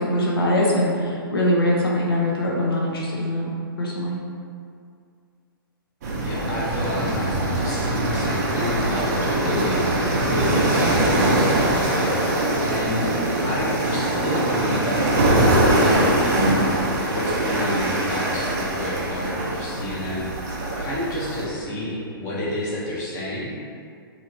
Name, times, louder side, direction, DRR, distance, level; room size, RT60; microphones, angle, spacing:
voice 1, 0.0-3.5 3.8-4.1 16.4-16.5, left 1 dB, 75° left, -4 dB, 0.7 m, -22 dB
sound 1, 6.0-21.4, right 1 dB, 45° right, 0.5 m, -22 dB
voice 2, 6.2-9.8 10.3-13.1 13.4-16.6 17.1-20.5 20.8-23.6, left 1 dB, 25° left, -7 dB, 0.7 m, -29 dB
2.8 x 2.8 x 2.5 m, 2.3 s
figure-of-eight pair, 120°, 12 cm